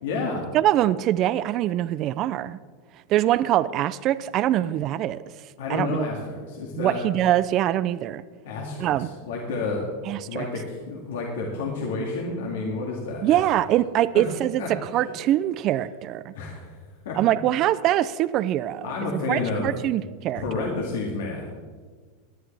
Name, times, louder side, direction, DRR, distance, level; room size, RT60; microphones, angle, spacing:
voice 1, 0.0-0.4 5.6-7.0 8.4-9.9 10.3-13.4 14.1-14.2 14.6-14.7 16.3-16.8 17.1-17.2 18.8-19.7 20.3-21.6, left 3 dB, 80° left, -1 dB, 2.2 m, -30 dB
voice 2, 0.5-2.6 3.1-5.2 5.7-6.0 6.8-8.2 8.8-9.1 10.1-10.5 13.2-16.3 17.1-18.9 19.3-20.4, right 13 dB, 40° right, 15 dB, 0.4 m, -23 dB
18.0 x 10.5 x 3.4 m, 1.5 s
supercardioid pair, 135°, 0 cm